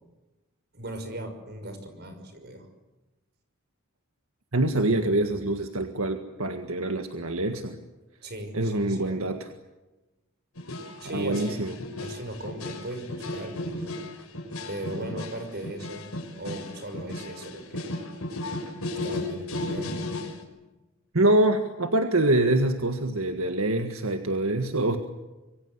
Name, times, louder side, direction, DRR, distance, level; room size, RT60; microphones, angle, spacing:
voice 1, 0.7-2.7 8.2-9.3 11.0-11.6 12.0-13.9 14.7-16.1 16.4-17.9 19.0-20.0, right 1 dB, 50° right, 7 dB, 5.8 m, -38 dB
voice 2, 4.5-7.8 8.5-9.5 11.1-11.8 21.1-25.0, right 2 dB, 75° right, 6 dB, 1.8 m, -25 dB
sound 1, 10.6-20.4, left 2 dB, 85° left, 6.6 m, -35 dB
26.5 x 24.0 x 8.1 m, 1.1 s
head